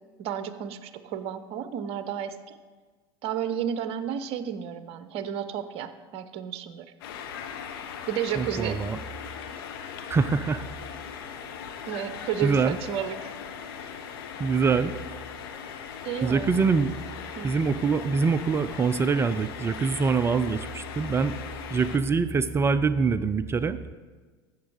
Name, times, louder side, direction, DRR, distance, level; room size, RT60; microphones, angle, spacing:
voice 1, 0.2-2.6 3.2-6.8 8.1-8.8 11.9-13.3 16.0-16.5 17.4-17.5, right 9 dB, 45° right, 12 dB, 0.8 m, -32 dB
sound 1, 7.0-22.0, left 7 dB, 60° left, 1.1 m, -39 dB
voice 2, 8.4-9.0 10.1-10.6 12.4-12.8 14.4-14.9 16.2-17.0 17.4-21.4 21.7-23.9, right 5 dB, 20° right, 13 dB, 0.4 m, -24 dB
14.0 x 7.3 x 4.9 m, 1.4 s
figure-of-eight pair, 80°, 14 cm